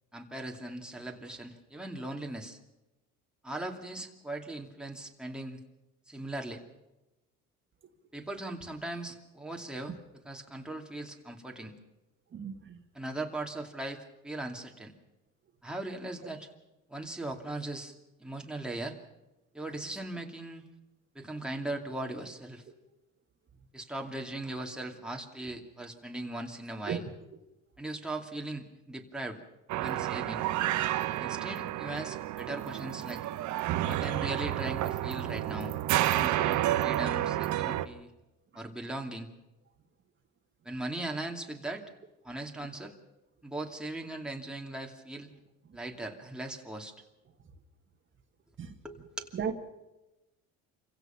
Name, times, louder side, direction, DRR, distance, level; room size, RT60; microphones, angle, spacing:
voice 1, 0.1-2.6 3.4-5.6 6.1-6.6 8.1-11.7 12.9-14.9 15.6-16.5 16.9-17.9 18.2-19.0 19.5-20.6 21.1-22.6 23.7-27.1 27.8-29.4 29.8-30.4 31.2-33.2 33.8-35.8 36.1-38.1 38.5-39.3 40.6-41.8 42.2-42.9 43.4-45.3 45.7-46.9 48.8-49.4, right 2 dB, 5° right, 1 dB, 2.6 m, -39 dB
voice 2, 12.3-12.8 26.9-27.0 48.6-48.7 49.3-49.6, right 7 dB, 40° right, 4 dB, 2.0 m, -34 dB
sound 1, 29.7-37.9, right 14 dB, 70° right, 1.2 m, -30 dB
27.0 x 16.5 x 5.9 m, 1.0 s
cardioid pair, 110°, 31 cm